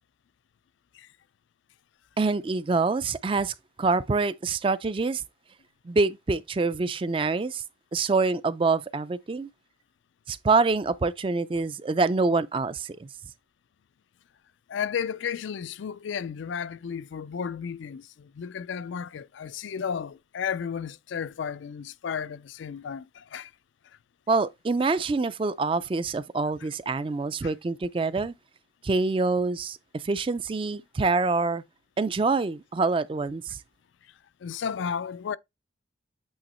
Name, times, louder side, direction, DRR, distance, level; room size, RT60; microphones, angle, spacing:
voice 1, 2.2-5.2 5.8-7.6 7.9-9.5 10.3-13.1 24.3-28.3 28.8-31.6 32.0-33.6, right 3 dB, 30° right, 0.3 m, -26 dB
voice 2, 14.7-23.5 27.4-27.5 34.0-34.1 34.4-35.4, left 7 dB, 80° left, 0.4 m, -33 dB
8.8 x 3.0 x 4.2 m
head